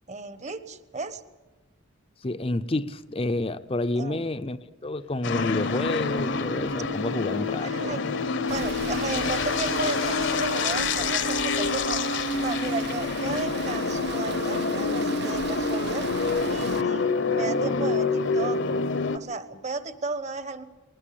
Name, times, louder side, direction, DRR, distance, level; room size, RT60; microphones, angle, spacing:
voice 1, 0.1-1.2 4.0-4.2 7.6-8.0 8.5-12.0 12.4-16.1 16.5-18.6 19.1-20.6, right 3 dB, 35° right, 12 dB, 1.1 m, -34 dB
voice 2, 2.2-4.6 4.8-8.0, left 2 dB, 25° left, 10 dB, 0.6 m, -29 dB
sound 1, 5.2-19.2, left 3 dB, 55° left, 1.0 m, -27 dB
sound 2, 6.6-10.4, left 9 dB, 85° left, 1.8 m, -43 dB
Rain, 8.5-16.8, right 6 dB, 55° right, 0.7 m, -39 dB
21.0 x 19.0 x 8.6 m, 1.2 s
head